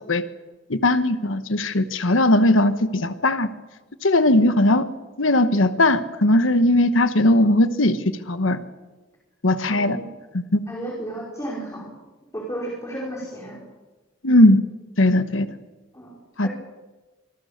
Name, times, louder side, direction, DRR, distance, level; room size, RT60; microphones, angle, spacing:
voice 1, 0.7-3.5 4.0-4.9 5.2-8.6 9.4-10.0 10.3-10.6 14.2-14.6 15.0-15.5 16.4-16.5, left 1 dB, 85° left, 11 dB, 1.2 m, -18 dB
voice 2, 9.7-10.1 10.7-12.0 12.3-13.6 15.9-16.5, right 1 dB, 15° left, -2 dB, 4.9 m, -33 dB
26.0 x 21.0 x 6.6 m, 1.2 s
head